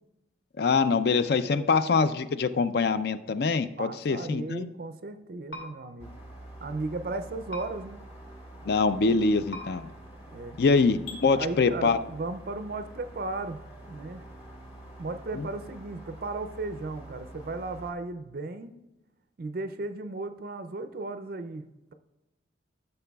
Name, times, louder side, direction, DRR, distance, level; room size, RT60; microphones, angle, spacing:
voice 1, 0.6-4.7 8.7-9.9 10.6-12.0 15.4-15.5, left 4 dB, 55° left, 13 dB, 0.4 m, -24 dB
voice 2, 3.8-6.1 6.6-8.0 10.3-10.6 11.3-13.6 13.9-14.3 15.0-18.7 19.4-21.6, right 3 dB, 50° right, 10 dB, 0.4 m, -35 dB
sound 1, 5.5-5.6 7.5-7.6 9.5-9.6 11.0-11.2, left 1 dB, 85° left, 2.3 m, -38 dB
sound 2, 6.0-17.9, right 1 dB, 30° left, 1.5 m, -47 dB
13.0 x 6.6 x 2.3 m, 0.98 s
head